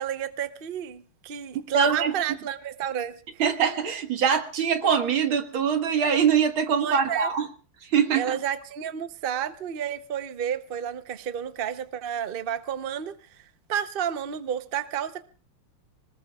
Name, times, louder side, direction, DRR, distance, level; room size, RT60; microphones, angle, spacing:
voice 1, 0.0-3.4 6.8-7.3 8.1-13.4 13.7-15.2, right 9 dB, 85° right, 0.4 m, -31 dB
voice 2, 1.7-2.1 3.4-7.5 7.9-8.4, right 7 dB, 70° right, 2.3 m, -23 dB
26.5 x 19.5 x 2.4 m
omnidirectional pair, 2.4 m